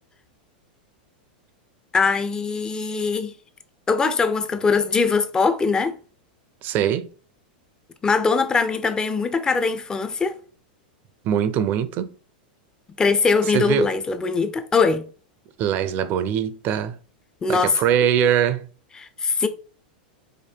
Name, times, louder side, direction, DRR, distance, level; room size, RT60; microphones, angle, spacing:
voice 1, 1.9-3.3 3.9-6.0 8.0-10.4 13.0-15.1 17.4-17.7 19.0-19.5, left 4 dB, 15° left, 0.5 m, -21 dB
voice 2, 6.6-7.1 11.2-12.1 13.5-13.9 15.6-17.0 17.5-18.7, right 9 dB, 40° right, 0.5 m, -22 dB
5.1 x 2.2 x 4.5 m
supercardioid pair, 130°, 5 cm